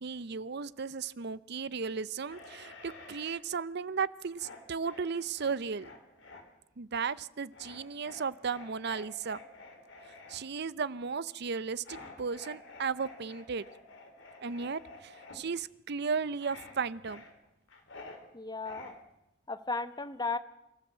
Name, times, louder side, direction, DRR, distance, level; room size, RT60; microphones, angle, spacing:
voice 1, 0.0-5.9 6.8-9.4 10.3-13.7 14.4-17.2, right 5 dB, 55° right, 17 dB, 0.6 m, -35 dB
sound 1, 2.3-3.4 4.3-6.4 7.5-10.4 11.8-15.4 16.4-16.8 17.0-18.2 18.6-18.9, left 3 dB, 70° left, 3.5 m, -50 dB
voice 2, 18.3-18.9 19.5-20.4, left 3 dB, 20° left, 11 dB, 1.0 m, -35 dB
26.0 x 14.5 x 7.5 m, 0.88 s
head